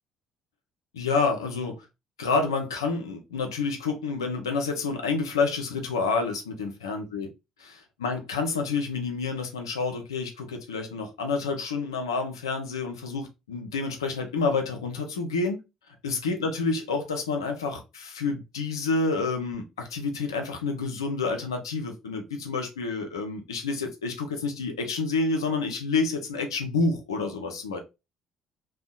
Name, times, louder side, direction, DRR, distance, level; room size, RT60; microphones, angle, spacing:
voice 1, 0.9-1.9 2.2-7.3 7.6-7.7 8.0-15.6 16.0-27.8, left 4 dB, 90° left, 0.4 m, -28 dB
2.6 x 2.0 x 2.3 m
hypercardioid pair, 50°, 2 cm